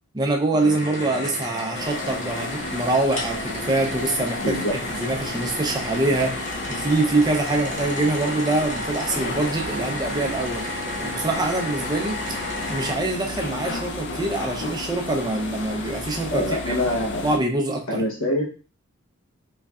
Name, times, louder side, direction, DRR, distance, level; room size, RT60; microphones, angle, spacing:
voice 1, 0.1-10.7 11.0-12.2 12.7-16.7 17.2-18.0, right 2 dB, 20° right, 1 dB, 0.5 m, -24 dB
sound 1, 0.6-12.9, left 1 dB, 35° left, 0.9 m, -32 dB
sound 2, 1.7-17.4, left 3 dB, 55° left, 0.5 m, -34 dB
voice 2, 4.4-4.8 16.3-17.2 17.9-18.4, left 1 dB, 75° left, -2 dB, 1.0 m, -25 dB
3.8 x 3.2 x 2.3 m, 0.36 s
head